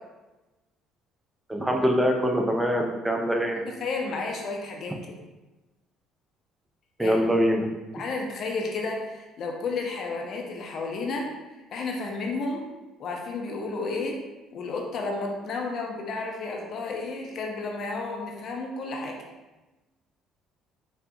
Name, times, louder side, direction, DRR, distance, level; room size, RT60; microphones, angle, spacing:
voice 1, 1.5-3.6 7.0-7.6, equal, 10° right, 2 dB, 0.5 m, -23 dB
voice 2, 3.6-5.0 7.0-7.2 7.9-11.3 11.7-12.6 13.0-14.2 14.5-19.2, left 3 dB, 50° left, 1 dB, 0.5 m, -32 dB
4.2 x 2.1 x 2.6 m, 1.1 s
figure-of-eight pair, 50°, 0 cm